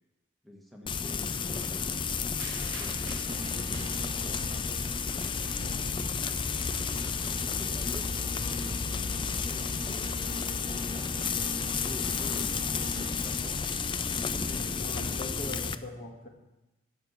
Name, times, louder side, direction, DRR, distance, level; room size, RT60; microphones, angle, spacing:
voice 1, 0.4-2.3 2.8-5.5 6.9-11.0 11.7-13.6, equal, ahead, -1 dB, 1.5 m, -48 dB
Frying (food), 0.9-15.8, left 6 dB, 25° left, 0.4 m, -32 dB
sound 1, 1.1-15.6, right 1 dB, 25° right, 1.1 m, -43 dB
sound 2, 2.4-4.6 5.0-7.6 8.5-8.6, right 5 dB, 65° right, 0.9 m, -48 dB
voice 2, 5.5-6.2 14.3-16.3, left 1 dB, 50° left, 1 dB, 2.2 m, -42 dB
12.5 x 7.1 x 8.2 m, 1.0 s
head